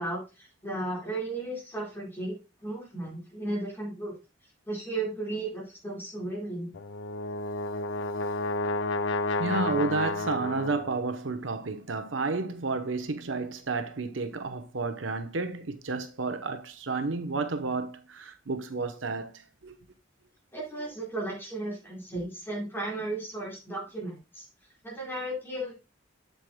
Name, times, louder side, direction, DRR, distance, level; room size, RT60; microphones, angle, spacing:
voice 1, 0.0-2.3 2.6-4.1 4.7-6.7 20.5-24.5 24.8-25.7, right 2 dB, 10° left, 4.1 m, -35 dB
Brass instrument, 6.7-11.0, left 2 dB, 65° left, 0.5 m, -31 dB
voice 2, 9.4-19.8, right 3 dB, 75° right, 0.9 m, -31 dB
8.1 x 7.7 x 2.2 m
head